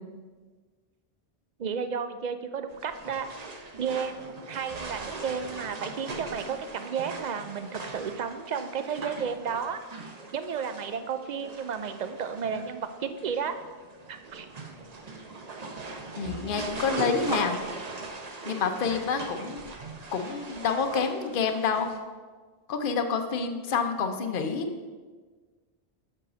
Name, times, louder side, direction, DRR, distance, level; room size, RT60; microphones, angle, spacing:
voice 1, 1.6-3.3 3.8-13.6 14.1-14.5, right 6 dB, 55° right, 9 dB, 0.5 m, -33 dB
sound 1, 2.7-22.0, right 3 dB, 40° right, 0.8 m, -40 dB
voice 2, 16.2-17.6 18.5-19.6 20.1-21.9 22.7-24.7, left 5 dB, 55° left, 6 dB, 0.9 m, -28 dB
7.5 x 4.8 x 6.1 m, 1.4 s
omnidirectional pair, 1.1 m